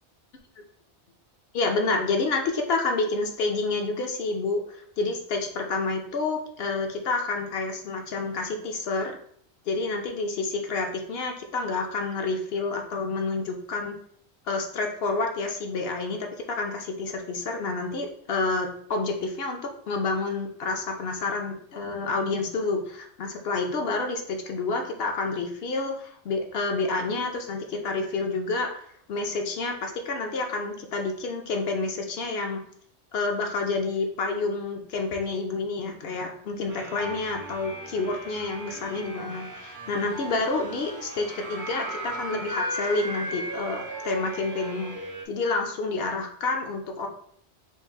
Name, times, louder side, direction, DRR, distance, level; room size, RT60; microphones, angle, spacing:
voice 1, 1.5-9.2 9.7-14.0 14.5-28.7 29.1-32.6 33.1-45.0 45.3-47.1, left 3 dB, 65° left, 3 dB, 0.9 m, -29 dB
sound 1, 36.7-45.2, right 1 dB, 30° right, 0.3 m, -36 dB
4.5 x 2.4 x 3.5 m, 0.63 s
omnidirectional pair, 1.1 m